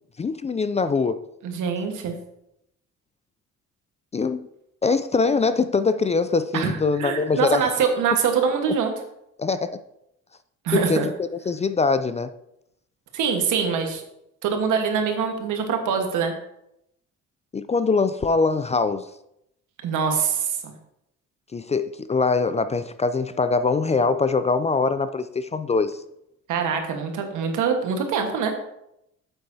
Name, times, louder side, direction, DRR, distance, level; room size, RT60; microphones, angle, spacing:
voice 1, 0.2-1.2 4.1-4.5 4.8-7.6 9.4-9.8 10.7-12.3 17.5-19.1 21.5-26.0, left 4 dB, 25° left, 0.3 m, -23 dB
voice 2, 1.4-2.1 6.5-8.9 10.6-11.1 13.1-14.0 14.4-16.3 19.8-20.7 26.5-28.5, right 6 dB, 85° right, 1.4 m, -24 dB
8.2 x 7.9 x 2.7 m
cardioid pair, 90°, 30 cm